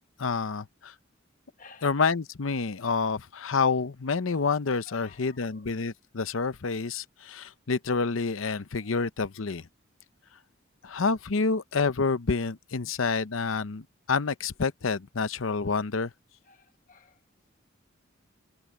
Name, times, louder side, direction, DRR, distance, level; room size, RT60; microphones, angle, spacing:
voice 1, 0.2-0.9 1.8-9.7 10.8-16.1, left 4 dB, 90° left, 0.8 m, -28 dB
voice 2, 4.9-5.7 16.5-17.2, left 4 dB, 40° left, 1.4 m, -54 dB
head